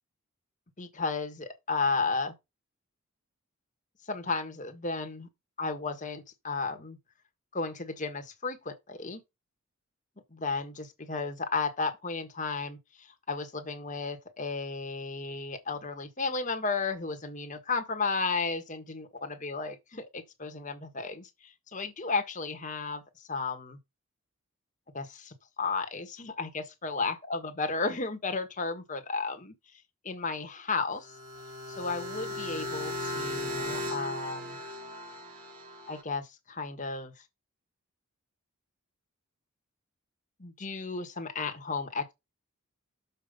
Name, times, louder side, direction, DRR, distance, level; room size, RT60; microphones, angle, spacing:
voice 1, 0.8-2.3 4.1-5.3 5.6-7.0 7.5-9.2 10.3-23.0 23.3-23.8 24.9-29.5 30.0-31.1 31.8-34.6 35.9-37.1 40.4-42.1, left 4 dB, 35° left, 1.6 m, -33 dB
sound 1, 31.0-36.0, left 1 dB, 40° right, 2.5 m, -37 dB
7.1 x 5.0 x 5.2 m
head